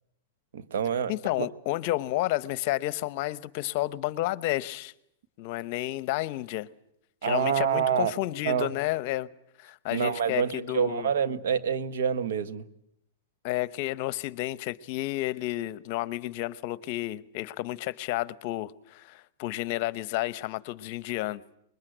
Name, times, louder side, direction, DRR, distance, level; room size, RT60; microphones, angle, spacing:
voice 1, 0.5-1.1 1.4-1.5 7.2-8.1 8.4-8.7 9.9-12.6, right 8 dB, 75° right, 1.4 m, -27 dB
voice 2, 1.1-4.9 5.4-6.7 7.2-9.3 9.6-11.1 13.4-21.4, left 17 dB, 50° left, 0.9 m, -31 dB
24.5 x 21.0 x 8.0 m
hypercardioid pair, 130°, 0 cm